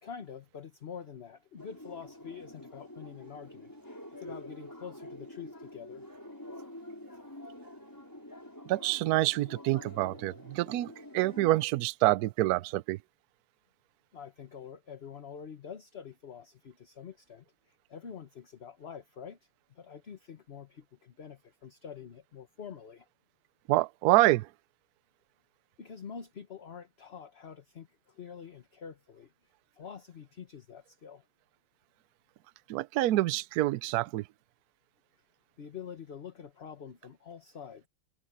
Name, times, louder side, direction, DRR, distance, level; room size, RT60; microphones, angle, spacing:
voice 1, 0.0-6.1 14.1-23.1 25.8-29.3 29.7-31.2 35.6-37.9, left 7 dB, 40° left, 1.1 m, -46 dB
sound 1, 1.6-11.5, left 1 dB, 10° left, 5.4 m, -47 dB
voice 2, 8.7-13.0 23.7-24.5 32.7-34.2, right 17 dB, 75° right, 0.8 m, -27 dB
omnidirectional pair, 2.2 m